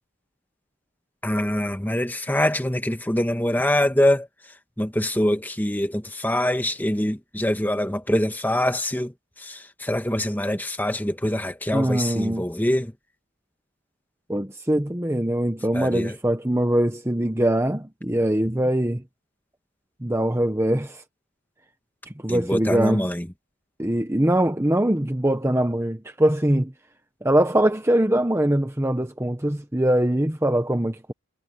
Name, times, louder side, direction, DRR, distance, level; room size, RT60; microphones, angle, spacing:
voice 1, 1.2-4.3 4.8-12.9 15.7-16.2 22.3-23.3, left 1 dB, 10° left, 1.5 m, -24 dB
voice 2, 11.7-12.4 14.3-19.0 20.0-21.0 22.1-23.1 23.8-26.7 27.2-31.1, right 1 dB, 10° right, 1.0 m, -22 dB
head